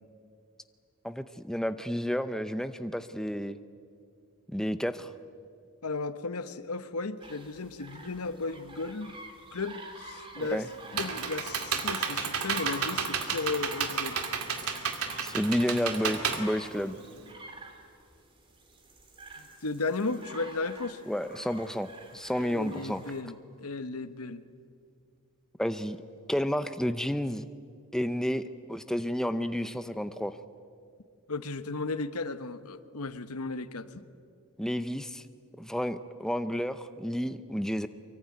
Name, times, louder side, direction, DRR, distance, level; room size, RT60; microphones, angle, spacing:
voice 1, 1.0-3.6 4.5-5.1 10.4-10.7 15.2-17.0 21.1-23.0 25.6-26.0 26.3-27.4 27.9-28.4 28.7-30.4 34.6-35.2 35.6-37.9, equal, ahead, 10 dB, 0.6 m, -31 dB
voice 2, 5.8-9.2 9.5-10.6 10.9-14.2 19.6-21.0 22.4-24.4 31.3-34.0, left 3 dB, 80° left, 12 dB, 1.1 m, -35 dB
sound 1, 7.2-23.2, right 2 dB, 25° right, 3.0 m, -47 dB
Computer keyboard, 10.4-17.3, right 6 dB, 85° right, 2.5 m, -32 dB
24.5 x 23.5 x 9.6 m, 2.3 s
head